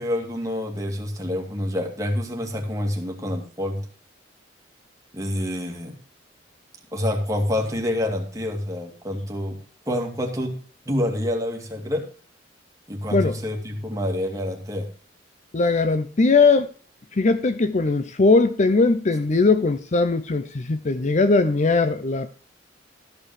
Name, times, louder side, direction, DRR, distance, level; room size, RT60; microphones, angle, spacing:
voice 1, 0.0-3.8 5.1-5.9 6.9-9.6 9.9-10.6 10.9-12.1 12.9-14.9, left 1 dB, 20° right, 2.3 m, -27 dB
voice 2, 15.5-16.7 17.1-22.3, left 3 dB, 40° left, 0.6 m, -20 dB
13.5 x 5.4 x 6.5 m
head